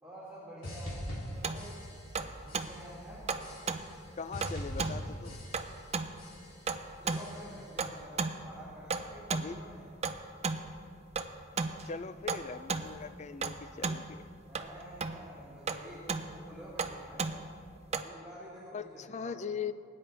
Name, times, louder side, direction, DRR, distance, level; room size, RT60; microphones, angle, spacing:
voice 1, 0.0-1.8 2.4-3.3 7.0-9.9 14.5-17.4 17.9-19.3, equal, 5° right, -10 dB, 2.4 m, -49 dB
sound 1, 0.6-2.2 2.5-3.0 3.4-4.0 4.3-5.9 6.2-6.7 7.1-7.7, equal, 85° left, 2.7 m, -43 dB
sound 2, 1.3-18.0, right 4 dB, 30° right, 0.5 m, -36 dB
voice 2, 4.2-5.4 9.3-9.6 11.5-14.2 18.7-19.7, left 5 dB, 35° left, 13 dB, 0.4 m, -40 dB
20.0 x 9.6 x 3.4 m, 2.4 s
head